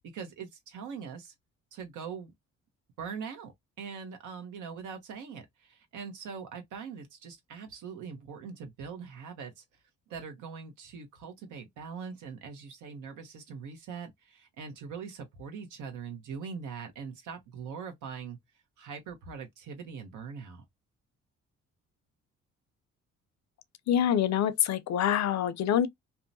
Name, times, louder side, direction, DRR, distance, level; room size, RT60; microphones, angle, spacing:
voice 1, 0.1-1.3 1.7-2.3 3.0-3.5 3.8-9.6 10.1-18.4 18.8-20.6, right 6 dB, 80° right, 0.9 m, -42 dB
voice 2, 23.9-25.9, left 10 dB, 60° left, 0.5 m, -26 dB
2.7 x 2.1 x 2.5 m
cardioid pair, 90°, 30 cm